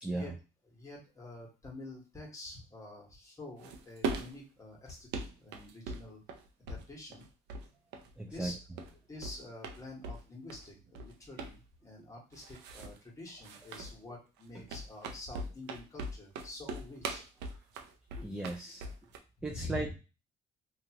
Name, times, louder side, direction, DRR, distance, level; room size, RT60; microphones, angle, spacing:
voice 1, 0.0-0.3 8.2-8.5 18.2-18.9 19.4-19.9, right 2 dB, 5° right, 1 dB, 0.4 m, -36 dB
voice 2, 0.7-6.2 6.6-7.2 8.2-8.6 8.9-17.3 19.4-19.9, left 2 dB, 20° left, -2 dB, 1.2 m, -47 dB
sound 1, 3.6-4.4 4.9-6.8 7.1-7.7 7.9-9.0 9.2-10.2 10.5-11.1 11.4-11.6 12.3-13.0 13.4-13.9 14.4-19.2, right 3 dB, 85° right, 0.5 m, -40 dB
2.7 x 2.4 x 2.8 m, 0.31 s
cardioid pair, 110°, 17 cm